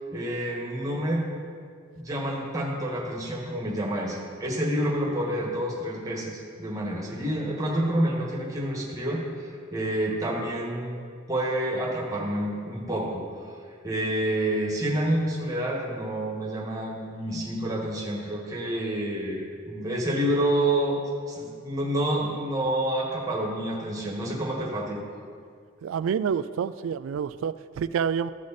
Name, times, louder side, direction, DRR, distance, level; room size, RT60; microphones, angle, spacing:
voice 1, 0.1-1.3 2.0-11.0 11.3-13.2 13.8-21.0 21.3-25.0, right 1 dB, 20° right, -3 dB, 1.6 m, -28 dB
voice 2, 25.8-28.3, right 7 dB, 75° right, 15 dB, 0.3 m, -28 dB
14.5 x 4.8 x 4.2 m, 2.1 s
head